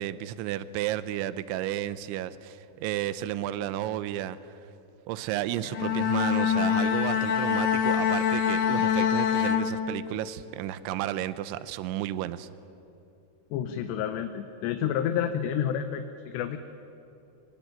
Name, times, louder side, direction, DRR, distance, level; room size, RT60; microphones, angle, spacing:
voice 1, 0.0-4.4 5.1-12.5, right 12 dB, 85° right, 14 dB, 3.2 m, -32 dB
Bowed string instrument, 5.6-10.3, left 8 dB, 60° left, 2.6 m, -25 dB
voice 2, 13.5-16.6, left 9 dB, 75° left, 8 dB, 2.9 m, -29 dB
25.0 x 22.5 x 9.2 m, 2.8 s
omnidirectional pair, 5.3 m